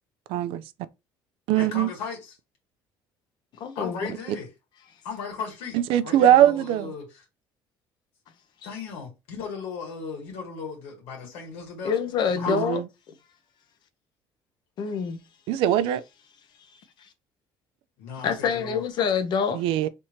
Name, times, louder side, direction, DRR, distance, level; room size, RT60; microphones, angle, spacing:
voice 1, 0.3-0.6 1.5-1.9 5.7-6.9 12.5-12.8 15.5-16.0 19.5-19.9, right 11 dB, 75° right, 0.5 m, -21 dB
voice 2, 1.5-2.4 3.8-4.5 5.0-7.3 8.6-11.9 12.3-12.7 18.0-18.8, left 5 dB, 90° left, 1.8 m, -36 dB
voice 3, 3.6-4.1 11.8-12.8 14.8-15.2 17.0-17.1 18.2-19.6, left 6 dB, 55° left, 0.8 m, -26 dB
3.4 x 2.8 x 4.4 m
cardioid pair, 135°, 9 cm